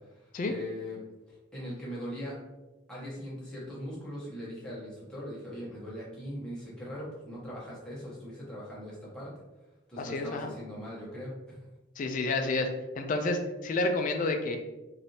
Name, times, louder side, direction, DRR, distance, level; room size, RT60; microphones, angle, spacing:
voice 1, 0.1-1.0 1.3-2.3 2.9-9.3 9.9-11.6, equal, 5° left, -8 dB, 0.9 m, -40 dB
voice 2, 10.0-10.5 12.0-12.7 13.0-14.6, left 2 dB, 45° left, 5 dB, 0.3 m, -29 dB
3.3 x 2.6 x 2.7 m, 1.1 s
head